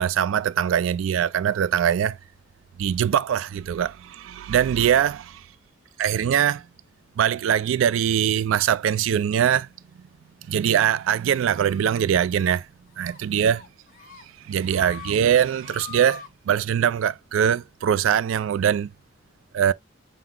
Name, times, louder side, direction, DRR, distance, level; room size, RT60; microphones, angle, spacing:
voice 1, 0.0-2.2 2.8-5.4 6.0-6.6 7.2-9.7 10.5-12.7 13.0-13.6 14.4-18.9 19.5-19.7, right 9 dB, 80° right, 0.3 m, -22 dB
sound 1, 11.5-12.0 12.4-12.6 12.9-13.2 13.5-14.2 14.6-15.2 15.5-16.3, left 9 dB, 45° left, 0.5 m, -43 dB
5.7 x 2.0 x 3.6 m
head